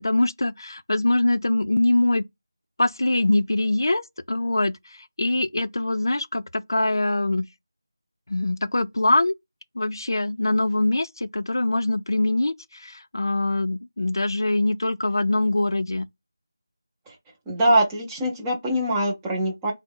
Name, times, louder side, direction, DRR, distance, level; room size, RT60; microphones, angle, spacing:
voice 1, 0.0-2.2 2.8-4.0 4.3-7.5 8.3-9.3 9.7-16.1, left 2 dB, 80° left, 0.4 m, -23 dB
voice 2, 17.5-19.7, right 1 dB, 5° right, 0.4 m, -23 dB
3.6 x 2.0 x 3.5 m
figure-of-eight pair, 180°, 2 cm